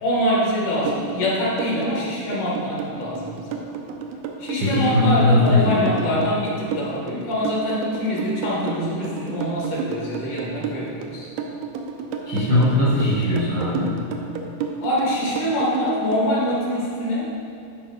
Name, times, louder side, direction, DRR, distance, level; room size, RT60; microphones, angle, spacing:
voice 1, 0.0-3.6 4.4-11.3 12.5-12.6 14.8-17.3, left 1 dB, 75° left, -5 dB, 3.1 m, -24 dB
sound 1, 0.9-16.3, right 6 dB, 90° right, 1.4 m, -30 dB
voice 2, 4.6-6.1 12.2-14.0, left 1 dB, 65° right, -7 dB, 1.1 m, -20 dB
10.5 x 4.7 x 3.9 m, 2.5 s
omnidirectional pair, 3.6 m